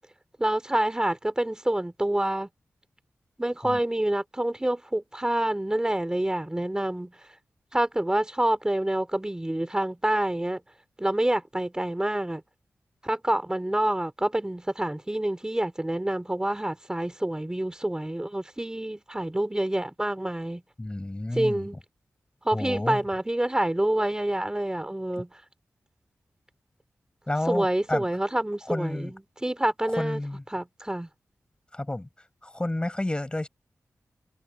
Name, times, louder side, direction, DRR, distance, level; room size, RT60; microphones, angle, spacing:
voice 1, 0.4-2.5 3.4-7.1 7.7-10.6 11.0-12.4 13.0-20.6 21.3-21.8 22.4-25.3 27.5-30.2 30.5-31.1, right 1 dB, 15° right, 3.9 m, -27 dB
voice 2, 20.8-21.7 22.5-23.0 27.3-28.1 28.7-29.1 29.9-30.4 31.7-32.1 32.4-33.5, left 1 dB, 20° left, 7.7 m, -30 dB
wide cardioid pair, 85°, 5 cm